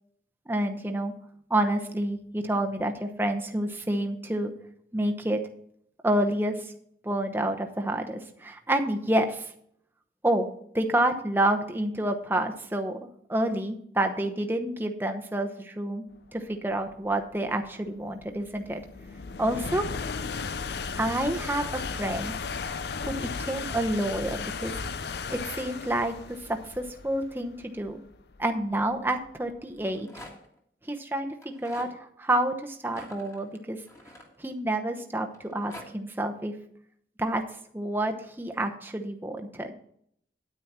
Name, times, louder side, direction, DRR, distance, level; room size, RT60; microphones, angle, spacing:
voice 1, 0.5-1.1 1.5-4.5 4.9-5.4 6.0-6.7 7.0-9.5 10.2-10.5 10.7-16.0 16.3-18.8 19.4-19.9 21.0-22.4 23.0-24.8 25.3-28.0 28.4-30.1 30.9-33.8 34.4-36.5 37.2-37.4 37.7-39.7, right 1 dB, 10° right, 4 dB, 0.9 m, -28 dB
sound 1, 16.5-29.8, left 5 dB, 65° left, 0.6 m, -36 dB
Rattle, 29.7-30.6 31.3-31.9 32.8-34.8 35.3-35.9, left 1 dB, 15° left, 1.8 m, -47 dB
9.4 x 9.4 x 4.3 m, 0.67 s
head